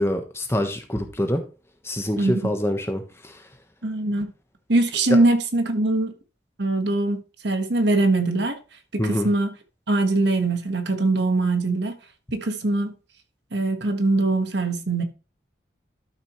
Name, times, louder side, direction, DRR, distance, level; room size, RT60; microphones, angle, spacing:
voice 1, 0.0-1.4 1.8-3.4 9.0-9.3, left 1 dB, 15° left, 1.1 m, -25 dB
voice 2, 2.2-2.5 3.8-4.3 4.7-6.1 6.6-8.6 8.9-9.5 9.9-11.9 12.3-12.9 13.5-15.0, right 2 dB, 70° right, 1.4 m, -22 dB
12.0 x 6.2 x 3.1 m
head